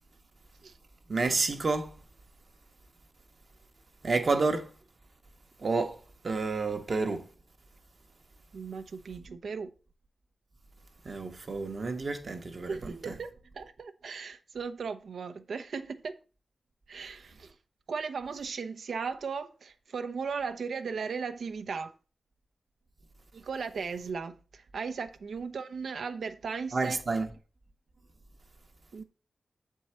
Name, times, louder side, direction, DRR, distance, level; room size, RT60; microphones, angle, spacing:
voice 1, 1.1-2.0 4.0-4.7 5.6-7.2 11.0-13.1 26.7-27.3, right 3 dB, 40° right, 0.9 m, -30 dB
voice 2, 8.5-9.7 12.7-16.2 16.9-17.5 17.9-21.9 23.3-27.0 28.9-29.0, right 5 dB, 75° right, 0.7 m, -37 dB
7.4 x 4.6 x 4.4 m
wide cardioid pair, 175°, 0 cm